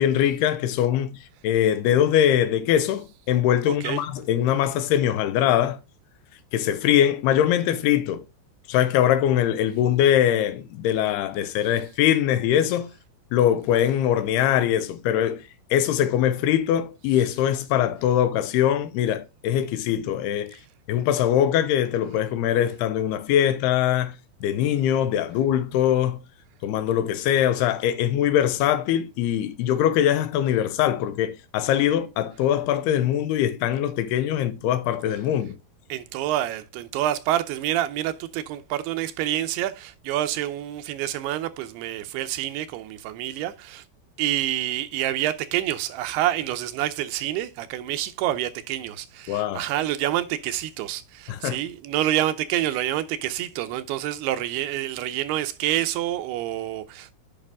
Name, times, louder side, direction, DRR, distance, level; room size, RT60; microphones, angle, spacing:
voice 1, 0.0-5.8 6.5-8.2 8.7-12.9 13.3-15.4 15.7-20.6 20.9-24.1 24.4-26.2 26.6-35.6 49.3-49.6 51.3-51.6, left 10 dB, 85° left, 2.8 m, -22 dB
voice 2, 3.7-4.0 35.9-43.8 44.2-57.1, right 13 dB, 85° right, 2.7 m, -27 dB
8.9 x 5.6 x 3.5 m
omnidirectional pair, 4.5 m